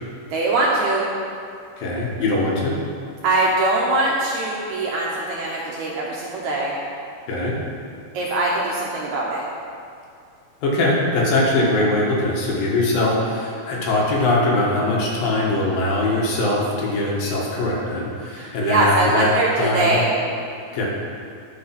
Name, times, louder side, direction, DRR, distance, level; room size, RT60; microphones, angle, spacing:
voice 1, 0.3-1.1 3.2-6.7 8.1-9.4 18.3-20.1, right 2 dB, 70° right, -4 dB, 1.9 m, -22 dB
voice 2, 1.8-2.8 7.3-7.6 10.6-19.3 19.6-20.0 20.7-20.9, left 2 dB, 70° left, -3 dB, 3.1 m, -21 dB
11.5 x 5.9 x 5.9 m, 2.3 s
omnidirectional pair, 4.3 m